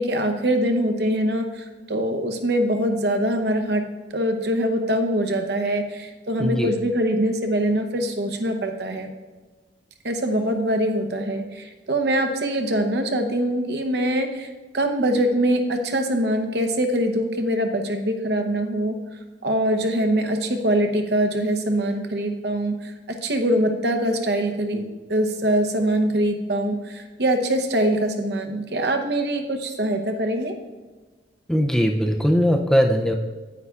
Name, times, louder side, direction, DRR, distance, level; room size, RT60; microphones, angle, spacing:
voice 1, 0.0-3.8 4.1-9.1 10.0-14.5 14.7-19.0 19.4-30.5, right 1 dB, 65° right, 5 dB, 0.8 m, -23 dB
voice 2, 6.4-6.7 31.5-33.1, equal, 5° left, 3 dB, 0.4 m, -20 dB
9.6 x 9.4 x 2.4 m, 1.3 s
head